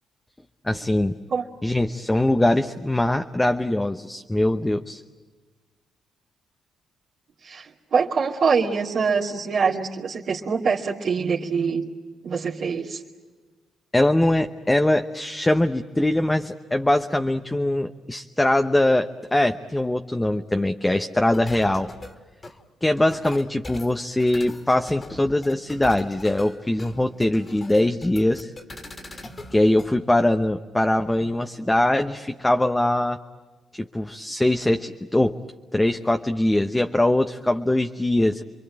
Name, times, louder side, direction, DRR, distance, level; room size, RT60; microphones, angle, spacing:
voice 1, 0.6-1.2 1.6-5.0 13.9-21.9 22.8-28.5 29.1-29.2 29.5-33.2 33.7-35.4 35.7-38.4, left 1 dB, 10° left, 6 dB, 0.9 m, -22 dB
voice 2, 7.4-11.8 12.2-13.0, right 5 dB, 60° right, -5 dB, 2.5 m, -24 dB
sound 1, 21.3-29.9, left 2 dB, 30° left, 2.3 m, -41 dB
28.0 x 23.0 x 8.8 m, 1.3 s
cardioid pair, 90°, 0 cm